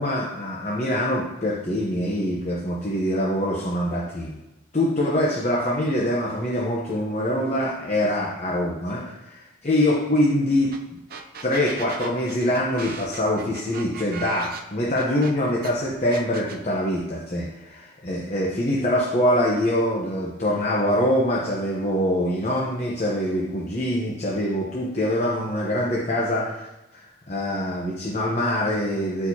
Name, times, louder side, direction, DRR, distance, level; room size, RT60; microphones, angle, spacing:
voice 1, 0.0-4.4 4.7-10.7 11.4-26.7 26.9-29.3, left 1 dB, 35° left, -4 dB, 0.9 m, -24 dB
sound 1, 10.7-10.8 11.1-15.7 16.1-16.6, right 6 dB, 45° right, 0.7 m, -37 dB
13.0 x 4.6 x 2.8 m, 1.0 s
head